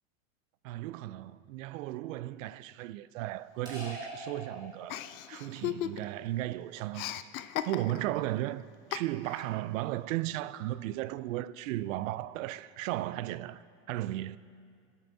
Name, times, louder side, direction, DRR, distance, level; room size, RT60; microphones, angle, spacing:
voice 1, 0.6-5.0 5.3-7.2 7.6-8.6 8.9-14.4, right 15 dB, 70° right, 0.5 m, -35 dB
sound 1, 3.7-5.3, right 1 dB, 10° right, 3.0 m, -43 dB
Chuckle chortle, 4.9-6.3 6.5-8.2 8.9-9.5, left 12 dB, 85° left, 0.6 m, -37 dB
23.5 x 8.3 x 2.7 m
supercardioid pair, 150°, 40 cm